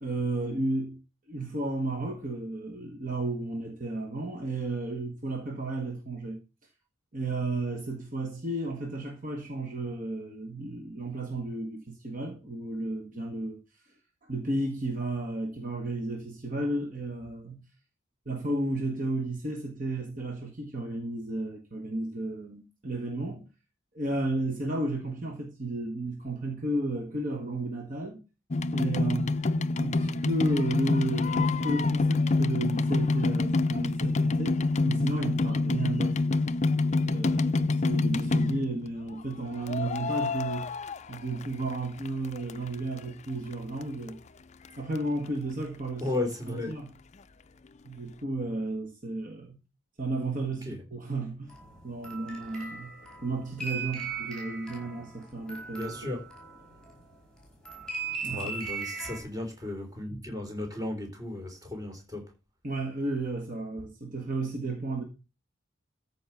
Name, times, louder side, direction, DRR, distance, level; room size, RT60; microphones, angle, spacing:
voice 1, 0.0-1.0 1.3-6.4 7.1-13.6 14.3-17.6 18.3-23.5 23.9-28.2 28.7-29.3 29.8-36.2 37.0-40.7 41.1-44.2 44.8-46.1 46.5-46.9 47.8-49.6 50.0-51.6 51.8-52.9 53.2-56.1 58.2-58.5 62.6-65.0, right 2 dB, 40° right, 1.8 m, -33 dB
sound 1, 28.5-38.8 39.7-41.8 42.0-43.0 43.5-43.6 43.8-43.9 44.1-44.2 44.6-44.7 45.0-45.1, left 3 dB, 35° left, 0.5 m, -27 dB
voice 2, 46.0-46.7 50.7-50.8 55.8-56.2 58.3-62.2, left 2 dB, 20° right, 3.9 m, -34 dB
sound 2, 51.5-57.1 57.7-59.2, right 5 dB, 5° left, 5.0 m, -38 dB
13.5 x 5.3 x 6.0 m
head